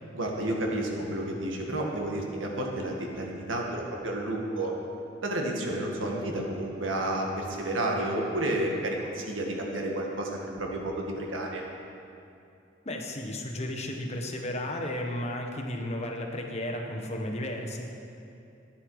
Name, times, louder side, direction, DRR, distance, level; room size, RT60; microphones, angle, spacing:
voice 1, 0.1-4.7 5.2-11.7, right 1 dB, 85° right, 0 dB, 1.7 m, -31 dB
voice 2, 12.8-17.9, left 1 dB, 35° left, 2 dB, 1.2 m, -33 dB
13.0 x 9.8 x 4.8 m, 2.6 s
head